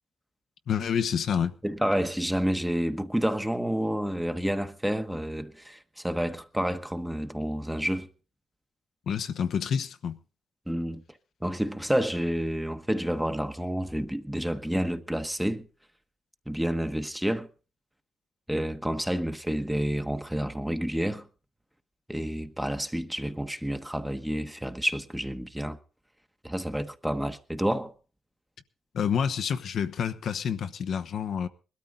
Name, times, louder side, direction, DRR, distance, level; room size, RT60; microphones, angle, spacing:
voice 1, 0.7-1.5 9.1-10.2 28.9-31.5, left 7 dB, 65° left, 0.9 m, -28 dB
voice 2, 1.6-8.1 10.7-11.0 11.4-15.7 16.5-17.5 18.5-21.3 22.1-25.8 26.4-27.9, equal, 5° right, 1.1 m, -29 dB
20.5 x 13.0 x 3.9 m
cardioid pair, 85°, 0 cm